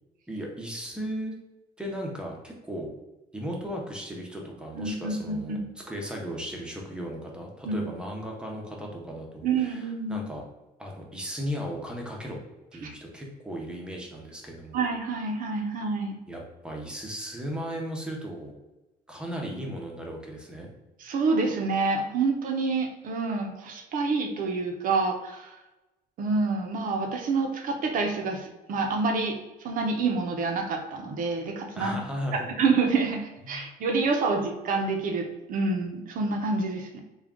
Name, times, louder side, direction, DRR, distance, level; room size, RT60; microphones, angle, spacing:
voice 1, 0.3-1.3 1.8-2.9 3.3-5.6 5.9-10.4 10.8-12.4 12.7-14.8 16.3-18.5 19.1-20.7 31.7-32.5 33.5-33.7, equal, 5° right, 0 dB, 0.7 m, -36 dB
voice 2, 4.8-5.6 7.6-7.8 9.4-10.2 12.8-12.9 14.7-16.2 21.0-25.5 26.2-29.4 29.6-32.0 32.3-37.0, right 4 dB, 60° right, 3 dB, 0.6 m, -27 dB
3.6 x 2.3 x 3.5 m, 1.0 s
cardioid pair, 145°, 16 cm